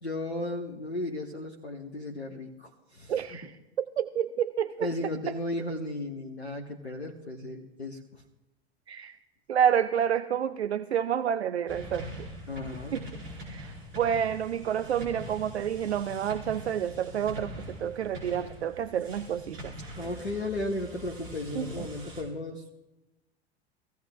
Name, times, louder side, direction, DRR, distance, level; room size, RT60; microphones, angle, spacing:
voice 1, 0.0-3.5 4.8-8.2 12.5-13.0 20.0-22.8, left 2 dB, 85° left, 2 dB, 1.1 m, -35 dB
voice 2, 3.1-4.9 8.9-9.2 9.5-12.3 12.9-13.0 13.4-19.7 21.6-21.8, right 9 dB, 75° right, 13 dB, 0.5 m, -29 dB
sound 1, 11.7-22.2, equal, 55° right, 5.1 m, -43 dB
21.5 x 15.5 x 2.4 m, 1.0 s
figure-of-eight pair, 80°, 33 cm